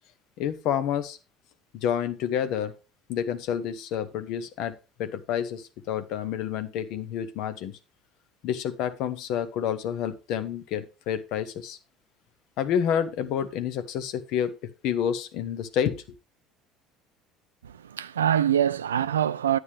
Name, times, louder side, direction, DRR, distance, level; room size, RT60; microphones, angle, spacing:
voice 1, 0.4-1.2 1.7-2.7 3.1-7.8 8.4-11.8 12.6-14.6 14.8-16.0, left 9 dB, 55° left, 1.1 m, -29 dB
voice 2, 17.6-19.6, right 9 dB, 80° right, 0.4 m, -24 dB
9.7 x 8.1 x 3.4 m
figure-of-eight pair, 60°, 0 cm